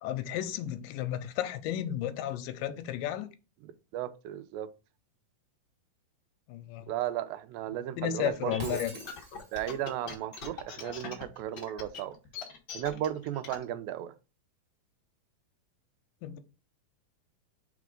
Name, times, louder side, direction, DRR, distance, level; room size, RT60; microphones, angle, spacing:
voice 1, 0.0-3.3 6.5-6.9 8.0-8.9 16.2-16.4, left 11 dB, 85° left, 2.2 m, -33 dB
voice 2, 3.9-4.7 6.9-8.8 9.5-12.2 12.7-14.1, right 12 dB, 85° right, 2.3 m, -35 dB
sound 1, 8.3-13.6, left 6 dB, 70° left, 1.0 m, -42 dB
Shatter, 8.6-9.8, equal, 35° right, 1.4 m, -44 dB
4.8 x 4.1 x 5.0 m
omnidirectional pair, 4.1 m